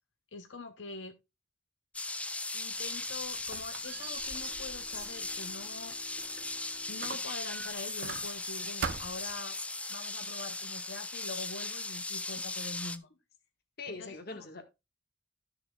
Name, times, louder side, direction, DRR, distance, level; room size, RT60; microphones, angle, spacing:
voice 1, 0.3-1.2 2.5-6.0 6.9-9.6 9.9-13.1 13.9-14.6, left 3 dB, 85° left, 0.8 m, -44 dB
sound 1, 1.9-13.0, left 2 dB, 5° left, 0.4 m, -38 dB
Squeak, 2.7-6.5 7.0-8.5 8.8-9.4, right 5 dB, 65° right, 0.6 m, -43 dB
Bowed string instrument, 3.7-9.1, left 2 dB, 35° right, 1.8 m, -60 dB
voice 2, 13.8-14.6, left 3 dB, 55° left, 1.6 m, -42 dB
13.0 x 6.7 x 2.3 m
head